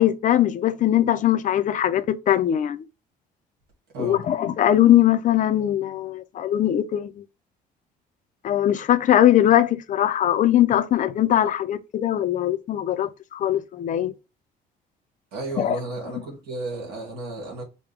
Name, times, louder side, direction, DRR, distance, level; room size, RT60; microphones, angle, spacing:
voice 1, 0.0-2.8 4.0-7.2 8.4-14.1 15.6-15.8, left 11 dB, 50° left, 0.5 m, -21 dB
voice 2, 15.3-17.6, right 2 dB, 75° right, 2.0 m, -33 dB
5.1 x 2.2 x 3.3 m
cardioid pair, 110°, 17 cm